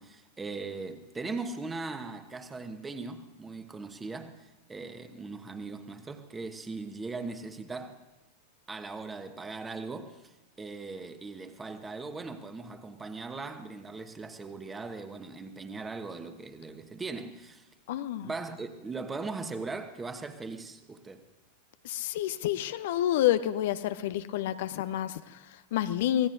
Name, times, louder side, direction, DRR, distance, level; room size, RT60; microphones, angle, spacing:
voice 1, 0.0-8.0 8.7-17.7 18.2-21.2, right 3 dB, 15° right, 1.3 m, -39 dB
voice 2, 17.9-18.3 21.8-26.3, left 12 dB, 55° left, 0.6 m, -29 dB
25.0 x 18.5 x 2.7 m
figure-of-eight pair, 90°, 0 cm